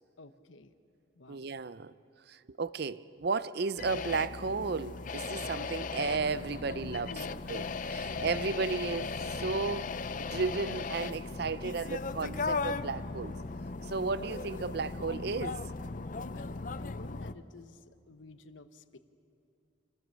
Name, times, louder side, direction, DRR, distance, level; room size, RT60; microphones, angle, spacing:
voice 1, 0.2-0.7 1.1-1.5 7.1-7.6 16.3-19.0, left 2 dB, 75° left, 1.0 m, -51 dB
voice 2, 1.3-1.9 2.3-7.1 7.5-13.3 13.9-15.6, right 4 dB, 55° right, 0.5 m, -34 dB
sound 1, 3.8-17.3, left 4 dB, 40° left, 0.5 m, -37 dB
26.0 x 19.0 x 7.5 m
head